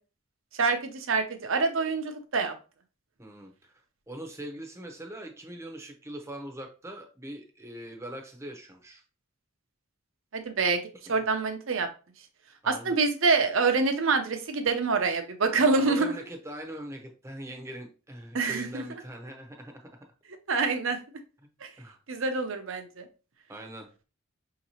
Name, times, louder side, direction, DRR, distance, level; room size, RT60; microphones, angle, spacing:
voice 1, 0.5-2.5 10.3-10.8 11.1-11.9 12.6-16.1 18.3-18.8 20.5-21.0 21.6-21.7 22.1-23.0, right 4 dB, 70° right, 6 dB, 0.7 m, -26 dB
voice 2, 3.2-3.7 4.1-9.0 11.1-11.2 12.6-13.0 15.6-20.1 21.8-22.0 23.5-23.9, right 1 dB, 15° right, 2 dB, 0.7 m, -42 dB
5.7 x 2.9 x 2.8 m, 0.34 s
head